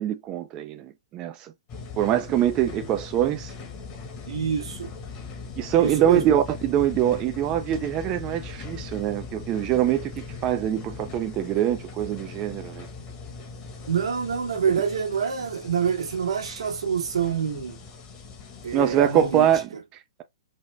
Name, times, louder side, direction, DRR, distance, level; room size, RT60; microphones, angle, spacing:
voice 1, 0.0-1.5 2.0-3.5 5.6-12.9 18.7-20.2, right 11 dB, 25° right, 0.3 m, -24 dB
sound 1, 1.7-19.7, left 4 dB, 30° left, 1.1 m, -40 dB
voice 2, 4.3-4.9 5.8-6.2 13.9-17.8 18.6-19.5, right 7 dB, 75° right, 1.2 m, -26 dB
4.0 x 2.1 x 3.2 m
hypercardioid pair, 130°, 3 cm